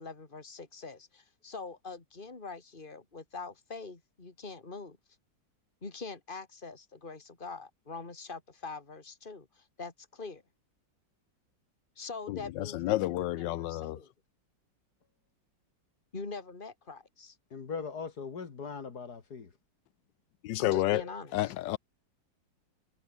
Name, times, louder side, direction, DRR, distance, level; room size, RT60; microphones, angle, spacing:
voice 1, 0.0-5.0 5.8-10.4 12.0-14.1 16.1-17.4 20.6-21.5, left 4 dB, 25° left, 3.1 m, -44 dB
voice 2, 12.3-14.0 20.4-21.8, left 16 dB, 80° left, 1.3 m, -31 dB
voice 3, 17.5-19.5, left 5 dB, 60° left, 2.7 m, -40 dB
omnidirectional pair, 1.9 m